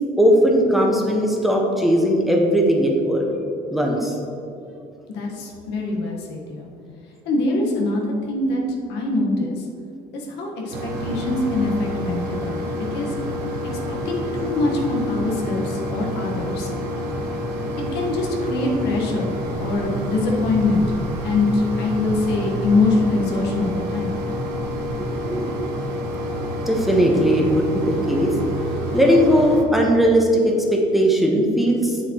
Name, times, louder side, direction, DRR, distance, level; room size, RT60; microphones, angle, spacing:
voice 1, 0.2-3.3 3.7-4.1 25.0-25.7 26.7-28.3 28.9-32.0, equal, ahead, -1 dB, 1.1 m, -18 dB
voice 2, 5.1-6.7 7.2-8.6 8.9-9.6 10.1-12.6 12.9-13.1 14.0-16.7 17.9-20.8 21.2-24.1, left 2 dB, 90° left, -1 dB, 1.3 m, -23 dB
Mechanisms, 10.7-29.6, equal, 90° right, 1.0 m, -28 dB
7.6 x 7.5 x 3.0 m, 2.7 s
cardioid pair, 110°, 17 cm